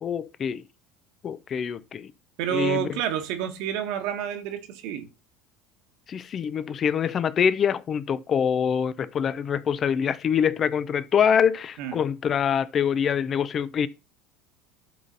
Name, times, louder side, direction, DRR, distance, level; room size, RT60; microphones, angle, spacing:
voice 1, 0.0-0.6 1.2-2.1 2.5-3.0 6.1-13.9, left 7 dB, 40° left, 0.7 m, -25 dB
voice 2, 2.4-5.1 11.8-11.9, right 9 dB, 65° right, 1.5 m, -29 dB
11.5 x 4.0 x 4.0 m
hypercardioid pair, 85°, 0 cm